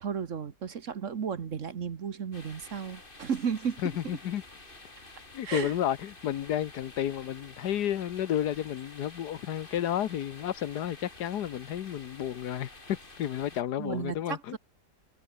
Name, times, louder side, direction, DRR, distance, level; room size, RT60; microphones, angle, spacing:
voice 1, 0.0-3.9 5.4-5.7 13.8-14.6, right 7 dB, 50° right, 1.5 m, -34 dB
sound 1, 2.3-13.6, left 2 dB, 30° left, 3.3 m, -50 dB
voice 2, 3.8-4.4 5.3-14.6, left 11 dB, 75° left, 1.5 m, -32 dB
omnidirectional pair, 1.8 m